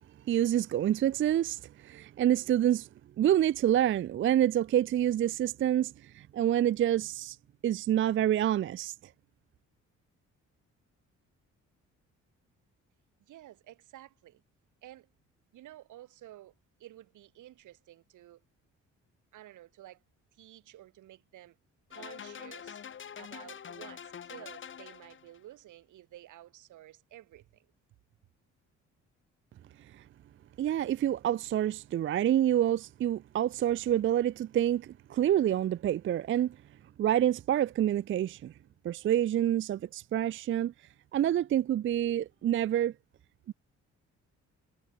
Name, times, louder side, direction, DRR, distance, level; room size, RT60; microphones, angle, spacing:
voice 1, 0.3-2.9 3.2-7.4 7.6-8.9 30.6-36.6 37.0-38.5 38.8-40.7 41.1-42.9 43.5-43.6, right 11 dB, 40° right, 0.4 m, -27 dB
voice 2, 13.2-14.4 14.8-15.1 15.5-16.5 16.8-18.4 19.3-20.0 20.3-21.6 21.9-22.8 23.2-27.7, right 14 dB, 80° right, 3.8 m, -52 dB
sound 1, 21.9-25.4, left 8 dB, 40° left, 1.0 m, -45 dB
cardioid pair, 90°, 30 cm